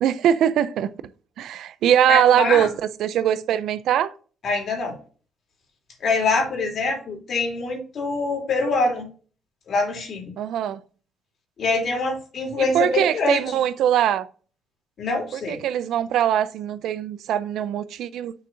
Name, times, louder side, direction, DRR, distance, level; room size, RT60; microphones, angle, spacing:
voice 1, 0.0-0.9 1.4-4.1 10.4-10.8 12.6-14.3 15.5-18.3, right 10 dB, 80° right, 0.4 m, -21 dB
voice 2, 2.1-2.7 4.4-4.9 6.0-9.1 9.7-10.3 11.6-13.6 15.0-15.6, left 3 dB, 60° left, 2.9 m, -24 dB
6.5 x 3.7 x 5.6 m
cardioid pair, 90°, 0 cm